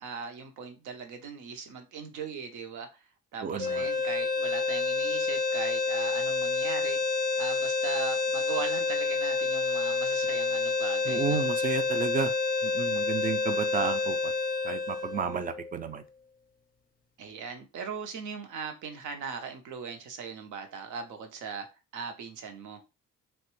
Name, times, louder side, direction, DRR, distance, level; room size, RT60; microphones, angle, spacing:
voice 1, 0.0-3.0 3.3-11.4 17.2-21.7 21.9-22.8, right 6 dB, 80° right, 0.7 m, -39 dB
voice 2, 3.4-3.9 11.1-12.3 12.6-14.3 14.6-16.0, right 6 dB, 30° right, 0.4 m, -32 dB
sound 1, 3.6-15.8, left 4 dB, 30° left, 0.5 m, -29 dB
3.0 x 2.2 x 2.9 m
cardioid pair, 90°, 30 cm